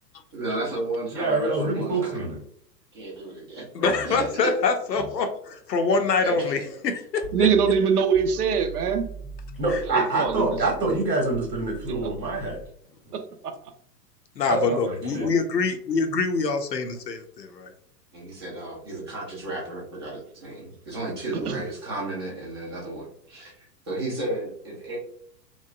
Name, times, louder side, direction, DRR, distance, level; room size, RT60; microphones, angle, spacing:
voice 1, 0.3-2.2 2.9-3.6 4.0-4.5 6.2-6.6 18.1-25.0, right 2 dB, 15° right, -4 dB, 0.4 m, -33 dB
voice 2, 1.1-2.4 9.6-12.6 13.0-13.1 14.5-15.3, right 2 dB, 80° right, 1 dB, 1.1 m, -26 dB
voice 3, 3.7-8.0 9.7-9.8 14.4-17.7, left 4 dB, 80° left, 6 dB, 0.6 m, -25 dB
sound 1, 7.2-9.9 10.3-12.7, right 6 dB, ahead, 0.8 m, -40 dB
voice 4, 7.3-9.1 9.9-10.5 11.9-12.0 13.1-13.5 21.5-21.6, right 7 dB, 65° right, 7 dB, 0.6 m, -23 dB
2.9 x 2.1 x 2.3 m, 0.65 s
figure-of-eight pair, 110°, 50 cm